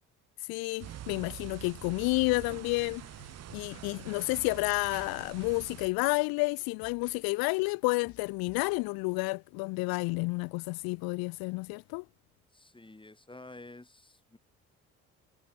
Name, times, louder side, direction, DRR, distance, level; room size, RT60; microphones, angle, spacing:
voice 1, 0.4-3.1 3.5-12.0, left 27 dB, 70° left, 0.5 m, -30 dB
sound 1, 0.8-5.9, right 12 dB, 45° right, 0.7 m, -45 dB
sound 2, 2.9-5.5 5.8-7.4 7.6-9.2, left 11 dB, 50° left, 1.5 m, -59 dB
voice 2, 12.5-14.4, left 2 dB, 15° left, 3.5 m, -50 dB
hypercardioid pair, 55°, 37 cm